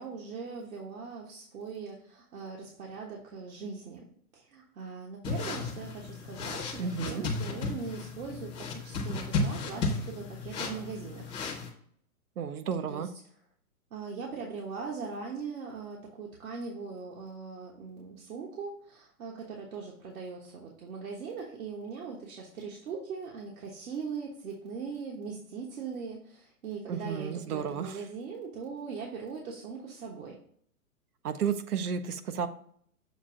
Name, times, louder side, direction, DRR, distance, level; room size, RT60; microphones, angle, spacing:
voice 1, 0.0-4.0 4.3-11.3 12.9-13.1 13.9-30.4, right 5 dB, 65° right, -2 dB, 1.3 m, -40 dB
sound 1, 5.2-11.7, left 3 dB, 10° left, 0.6 m, -34 dB
voice 2, 6.8-7.2 12.4-13.1 26.9-28.0 31.2-32.5, right 7 dB, 80° right, 10 dB, 0.8 m, -32 dB
7.1 x 2.6 x 5.7 m, 0.63 s
hypercardioid pair, 145°, 44 cm